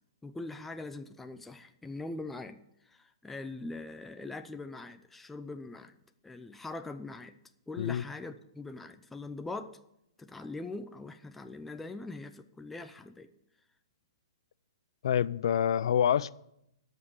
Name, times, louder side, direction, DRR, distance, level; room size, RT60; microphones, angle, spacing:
voice 1, 0.2-6.0 6.2-7.4 7.7-9.8 10.2-13.3, left 2 dB, 5° left, 0.5 m, -42 dB
voice 2, 15.0-16.3, left 9 dB, 65° left, 0.4 m, -26 dB
12.5 x 5.4 x 8.1 m
hypercardioid pair, 140°, 3 cm